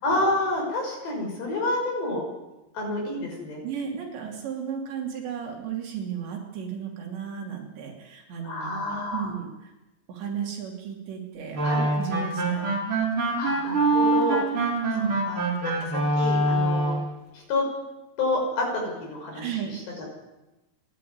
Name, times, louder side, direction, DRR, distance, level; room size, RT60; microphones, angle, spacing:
voice 1, 0.0-2.2 2.7-3.6 8.4-9.3 11.6-11.8 13.4-14.6 15.3-17.0 17.3-17.6 18.2-19.5 19.7-19.8, left 2 dB, 55° left, 1 dB, 8.2 m, -28 dB
voice 2, 3.6-8.8 9.1-9.7 10.1-12.8 14.6-15.3 19.3-19.7, right 8 dB, 65° right, 1 dB, 5.1 m, -33 dB
sound 1, 11.5-17.1, right 2 dB, 30° right, 3.8 m, -24 dB
30.0 x 11.5 x 9.6 m, 1.0 s
omnidirectional pair, 5.8 m